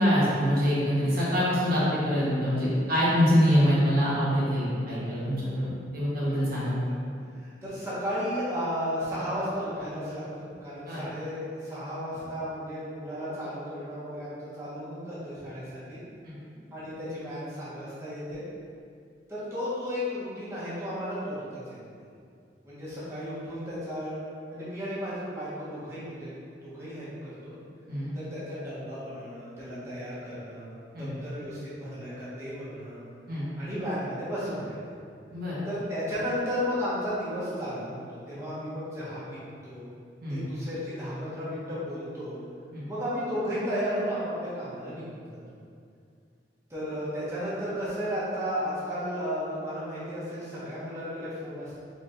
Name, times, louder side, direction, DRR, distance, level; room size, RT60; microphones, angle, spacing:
voice 1, 0.0-6.8 10.9-11.0 16.2-16.4 27.9-28.1 30.9-31.1 33.3-33.4 35.3-35.6 40.2-40.4 42.7-42.8, equal, 60° right, -9 dB, 1.2 m, -25 dB
voice 2, 7.3-16.0 16.7-18.4 19.3-22.0 22.6-26.3 26.6-27.6 28.1-30.7 31.0-33.0 33.6-34.9 35.7-39.4 39.6-39.9 40.3-42.4 42.9-45.4 46.7-51.8, equal, 15° right, -11 dB, 1.3 m, -34 dB
4.7 x 4.1 x 2.5 m, 2.3 s
head